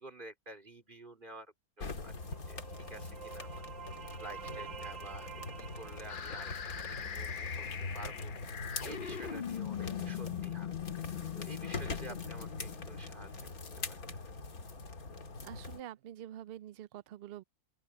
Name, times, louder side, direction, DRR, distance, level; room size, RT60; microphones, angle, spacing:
voice 1, 0.0-2.1 2.5-3.6 4.2-7.7 7.9-10.7 11.3-13.5 13.9-14.0 14.2-14.3, right 2 dB, 30° right, 4.0 m, -50 dB
sound 1, 1.8-15.8, left 3 dB, 70° left, 2.6 m, -43 dB
sound 2, 2.0-7.7, right 7 dB, 60° right, 1.5 m, -49 dB
sound 3, 6.1-14.0, left 9 dB, 45° left, 0.7 m, -41 dB
voice 2, 15.4-17.4, right 11 dB, 75° right, 0.5 m, -47 dB
open air
omnidirectional pair, 1.6 m